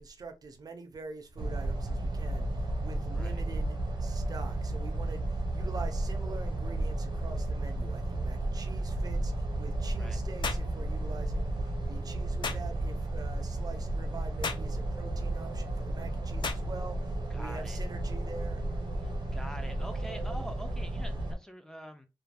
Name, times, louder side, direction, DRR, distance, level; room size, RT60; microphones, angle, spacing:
voice 1, 0.0-18.6, right 4 dB, 55° right, 0.5 m, -45 dB
sound 1, 1.4-21.3, right 1 dB, 85° right, 0.7 m, -33 dB
sound 2, 10.4-10.7 12.4-12.7 14.4-14.7 16.4-16.7, left 5 dB, 80° left, 0.3 m, -34 dB
voice 2, 17.3-17.8 19.0-22.1, equal, 5° left, 0.3 m, -45 dB
2.4 x 2.1 x 3.2 m
wide cardioid pair, 150°, 8 cm